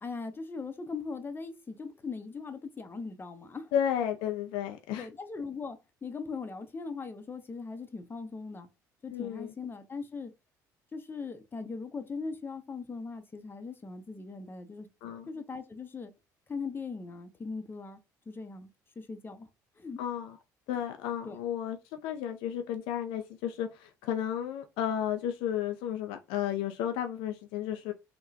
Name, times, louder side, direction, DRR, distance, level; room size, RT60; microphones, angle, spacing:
voice 1, 0.0-3.7 5.0-8.7 9.0-10.3 10.9-14.9 15.3-16.1 16.5-18.0 18.3-19.5 19.8-20.0 20.7-20.8 21.2-21.4, left 4 dB, 20° left, 0.6 m, -40 dB
voice 2, 3.7-5.1 9.1-9.5 15.0-15.3 20.0-20.4 20.7-27.9, left 10 dB, 65° left, 0.4 m, -33 dB
3.6 x 2.2 x 2.6 m
figure-of-eight pair, 55°, 10 cm